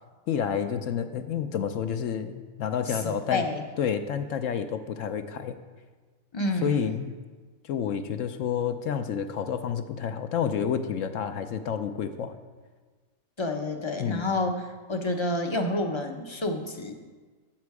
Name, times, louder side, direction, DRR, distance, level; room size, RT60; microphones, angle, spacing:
voice 1, 0.3-3.4 3.8-5.6 6.6-7.2 7.6-12.3 14.0-14.2, left 8 dB, 70° left, 8 dB, 0.9 m, -29 dB
voice 2, 2.9-3.6 6.3-7.0 13.4-16.9, left 2 dB, 30° left, 4 dB, 0.6 m, -29 dB
12.0 x 7.3 x 4.7 m, 1.4 s
omnidirectional pair, 1.4 m